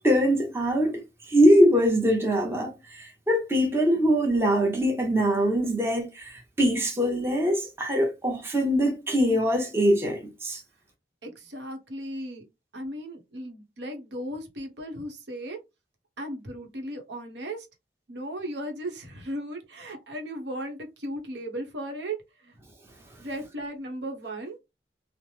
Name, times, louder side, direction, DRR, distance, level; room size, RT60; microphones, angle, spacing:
voice 1, 0.0-10.6, equal, 15° right, 0.7 m, -23 dB
voice 2, 11.2-12.4 12.7-15.6 16.2-17.7 18.1-22.2 22.4-22.5 23.2-24.6, right 1 dB, 85° right, 0.9 m, -36 dB
3.0 x 2.0 x 3.1 m
head